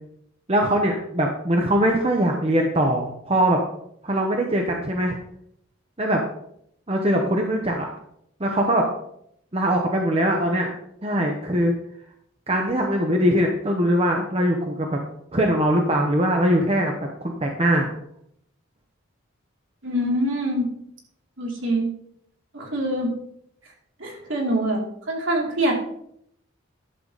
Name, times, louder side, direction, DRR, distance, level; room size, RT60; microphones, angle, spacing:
voice 1, 0.5-3.6 4.0-5.2 6.0-6.2 6.9-7.9 8.4-8.9 9.5-10.7 11.0-11.7 12.5-15.0 15.3-16.9 17.2-17.9, right 1 dB, 30° right, 1 dB, 0.9 m, -21 dB
voice 2, 19.8-20.7 21.4-21.9 22.5-23.1 24.0-25.7, right 1 dB, 65° right, -1 dB, 2.7 m, -24 dB
11.0 x 6.9 x 3.9 m, 0.71 s
head